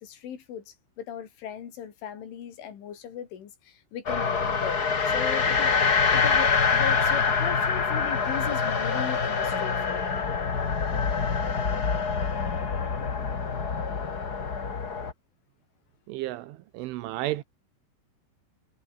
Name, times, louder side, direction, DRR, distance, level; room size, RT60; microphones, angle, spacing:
voice 1, 0.0-5.7 6.1-10.0, left 9 dB, 75° left, 5.8 m, -38 dB
sound 1, 4.1-15.1, left 5 dB, 50° left, 1.1 m, -25 dB
voice 2, 16.1-17.4, right 16 dB, 80° right, 3.4 m, -32 dB
omnidirectional pair, 5.6 m